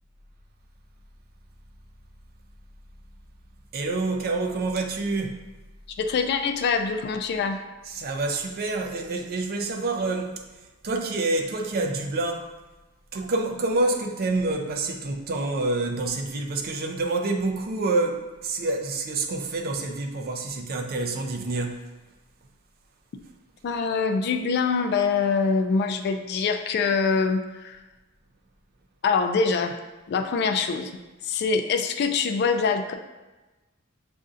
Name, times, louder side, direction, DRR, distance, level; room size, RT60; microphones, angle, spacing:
voice 1, 3.7-5.5 7.9-10.5 10.8-12.5 13.1-21.8, right 2 dB, 45° right, 3 dB, 0.4 m, -27 dB
voice 2, 6.0-7.6 23.6-27.8 29.0-29.7 30.1-30.9 31.2-32.9, left 5 dB, 50° left, 6 dB, 0.3 m, -24 dB
6.4 x 2.6 x 2.4 m, 1.1 s
head